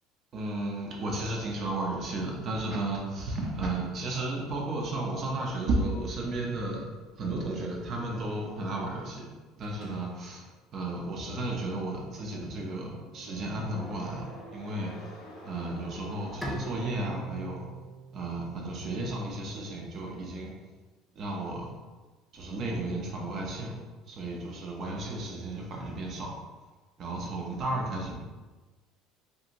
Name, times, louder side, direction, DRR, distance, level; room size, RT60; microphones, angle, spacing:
voice 1, 0.3-6.9 7.2-9.3 9.6-10.4 10.7-14.9 15.4-17.6 18.1-20.5 21.2-21.7 22.3-23.8 24.1-26.4 27.0-28.1, right 2 dB, 40° right, -1 dB, 0.6 m, -33 dB
sound 1, 9.6-17.7, equal, 60° left, 0.6 m, -50 dB
Bowed string instrument, 16.4-19.6, right 2 dB, 5° left, 0.4 m, -41 dB
2.9 x 2.6 x 2.6 m, 1.3 s
cardioid pair, 140°, 0 cm